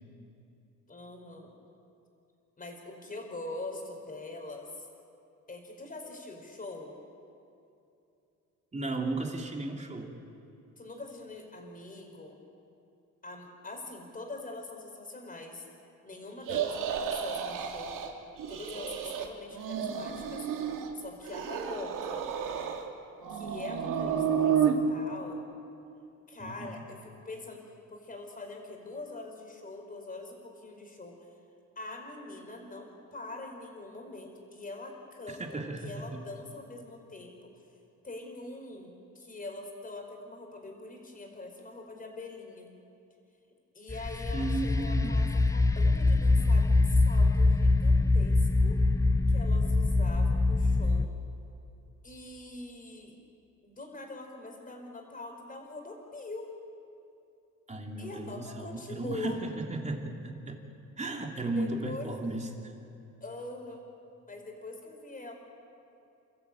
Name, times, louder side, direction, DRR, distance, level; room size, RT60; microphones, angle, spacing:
voice 1, 0.9-1.6 2.6-4.9 5.5-7.0 10.8-12.4 13.2-15.7 16.0-18.0 18.5-20.5 20.9-22.3 23.3-25.5 26.3-27.6 27.9-31.2 31.7-35.4 35.8-37.5 38.0-42.7 43.7-48.8 49.3-51.1 52.0-53.1 53.6-56.5 58.0-59.4 61.5-62.4 63.2-63.8 64.3-65.3, left 2 dB, 25° left, 2 dB, 5.0 m, -43 dB
voice 2, 8.7-10.1 26.4-26.8 35.3-36.2 44.3-45.2 57.7-60.6 61.0-62.7, right 2 dB, 20° right, 1 dB, 3.2 m, -35 dB
sound 1, 16.4-18.1 18.4-19.3 19.5-20.9 21.3-22.9 23.2-24.8, right 8 dB, 85° right, 2.3 m, -31 dB
sound 2, 43.9-51.1, left 2 dB, 10° left, 0.7 m, -24 dB
29.5 x 14.0 x 8.7 m, 2.7 s
cardioid pair, 105°, 31 cm